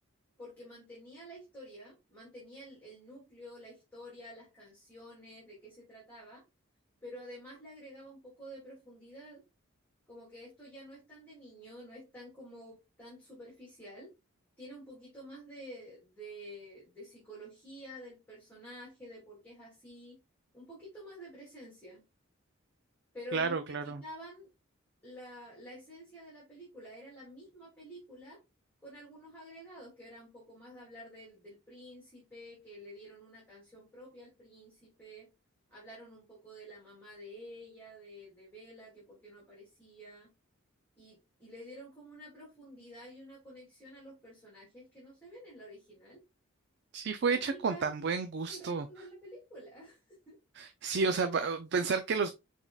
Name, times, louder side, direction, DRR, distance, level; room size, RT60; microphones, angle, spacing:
voice 1, 0.4-6.4 7.0-9.4 10.1-14.1 14.6-20.2 20.5-22.0 23.1-24.5 25.0-28.4 28.8-35.3 35.7-40.3 41.0-46.2 47.3-47.9 48.5-50.0 50.3-50.4, equal, 10° left, 2.5 m, -50 dB
voice 2, 23.3-24.0 46.9-48.9 50.6-52.3, right 4 dB, 50° right, 0.4 m, -31 dB
5.9 x 3.7 x 2.3 m
head